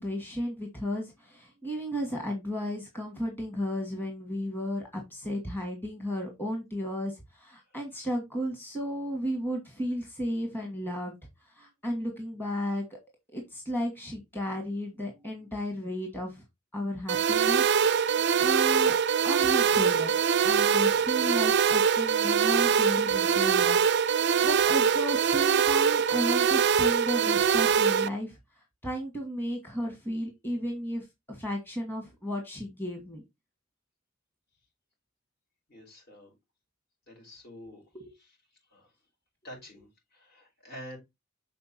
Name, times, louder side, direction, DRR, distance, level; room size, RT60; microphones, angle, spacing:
voice 1, 0.0-11.2 11.4-13.0 13.3-16.4 16.7-19.0 19.2-28.4 28.8-33.2 37.6-38.1, equal, 10° left, 1.5 m, -34 dB
sound 1, 17.1-28.1, right 7 dB, 60° right, 0.4 m, -23 dB
voice 2, 35.7-36.3 37.1-37.8 38.7-38.9 39.4-41.0, equal, 55° left, 5.5 m, -47 dB
6.7 x 4.4 x 4.2 m
head